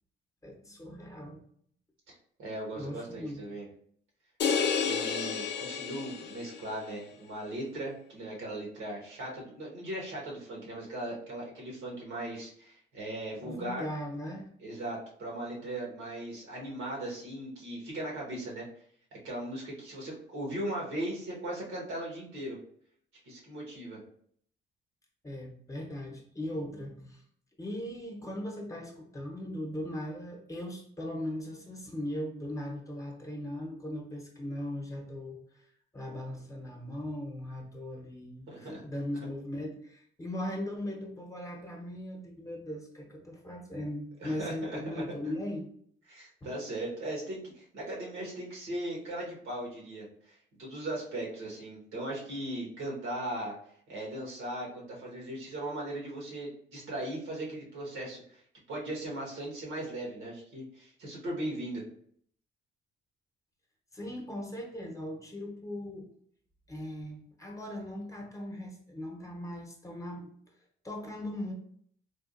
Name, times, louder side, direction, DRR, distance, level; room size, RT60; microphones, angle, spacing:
voice 1, 0.4-1.4 2.8-3.4 13.4-14.5 25.2-27.2 27.6-35.7 35.9-45.7 46.4-46.5 63.9-66.1 66.7-70.3 70.8-71.5, left 1 dB, 15° left, 0 dB, 0.8 m, -39 dB
voice 2, 2.4-3.6 4.6-13.9 14.6-18.7 19.2-22.6 23.2-24.0 38.5-38.8 44.2-45.3 46.1-53.5 53.9-58.4 58.7-61.8, right 1 dB, 85° right, -3 dB, 1.3 m, -38 dB
sound 1, 4.4-6.7, left 6 dB, 60° left, 0.5 m, -31 dB
3.5 x 2.4 x 2.5 m, 0.62 s
cardioid pair, 90°, 20 cm